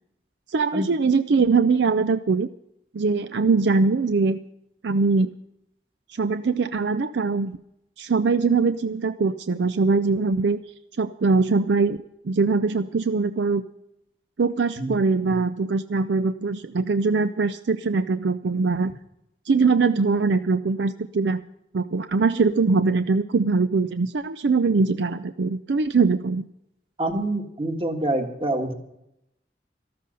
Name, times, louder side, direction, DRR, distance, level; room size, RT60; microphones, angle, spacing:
voice 1, 0.5-2.5 2.9-4.4 4.8-5.3 6.1-7.6 8.0-10.6 11.0-12.0 12.2-13.6 14.4-18.9 19.5-21.4 21.7-26.4, right 4 dB, 80° right, 11 dB, 0.5 m, -22 dB
voice 2, 27.0-28.7, right 1 dB, 30° right, 5 dB, 1.6 m, -26 dB
13.5 x 13.0 x 5.5 m, 0.81 s
head